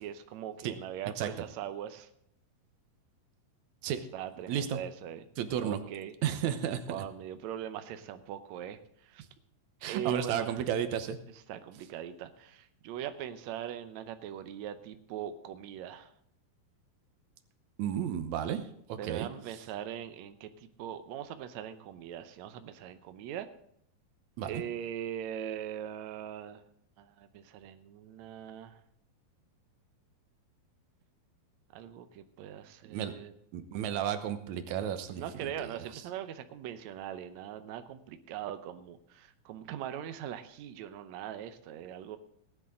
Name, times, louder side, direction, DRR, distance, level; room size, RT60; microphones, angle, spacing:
voice 1, 0.0-2.1 4.1-5.3 5.6-6.1 6.9-9.2 9.8-10.6 11.5-16.1 19.0-23.5 24.4-26.6 27.0-28.8 31.7-33.3 33.7-34.0 35.1-42.2, right 10 dB, 85° right, 9 dB, 1.6 m, -41 dB
voice 2, 4.5-4.8 5.4-5.8 6.2-7.0 9.8-11.2 17.8-18.6 18.9-19.3 24.4-24.6 32.9-33.1 33.5-35.5, right 9 dB, 70° right, 8 dB, 1.9 m, -32 dB
18.0 x 10.5 x 3.8 m, 0.70 s
omnidirectional pair, 4.3 m